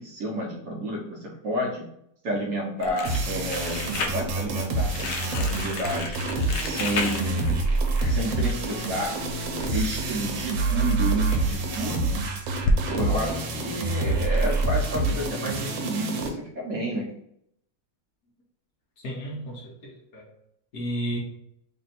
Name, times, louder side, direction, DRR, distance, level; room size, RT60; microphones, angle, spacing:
voice 1, 0.0-1.9 2.2-6.2 6.6-7.6 8.1-9.3 9.7-12.2 12.9-17.1, right 1 dB, 65° right, 1.0 m, -30 dB
Crumpling crinkling, 2.8-12.8, left 2 dB, 85° left, 0.7 m, -33 dB
sound 1, 3.0-16.3, right 2 dB, 85° right, 1.4 m, -27 dB
voice 2, 19.0-20.3 20.7-21.2, right 1 dB, 60° left, 1.2 m, -33 dB
3.3 x 2.6 x 4.1 m
omnidirectional pair, 2.0 m